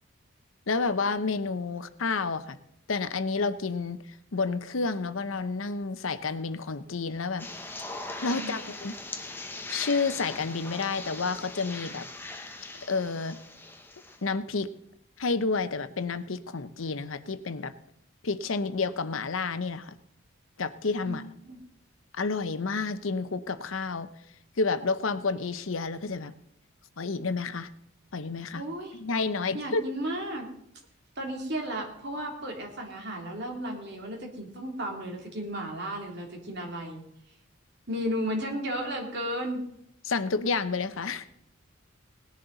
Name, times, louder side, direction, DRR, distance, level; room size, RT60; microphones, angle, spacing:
voice 1, 0.7-2.6 2.9-4.0 4.3-7.5 8.2-8.9 9.7-12.0 12.9-13.4 14.2-14.7 15.2-17.7 18.2-19.9 20.6-21.2 22.1-24.1 24.6-26.3 27.0-27.7 28.1-28.6 28.9-29.8 40.0-41.2, left 4 dB, 80° left, 12 dB, 0.8 m, -30 dB
sound 1, 7.4-14.2, left 2 dB, 10° left, 0.9 m, -40 dB
voice 2, 21.0-21.6 28.5-29.0 29.5-30.5 31.2-37.0 37.9-39.6, equal, 55° right, 0 dB, 3.0 m, -34 dB
19.0 x 10.5 x 4.0 m, 0.74 s
head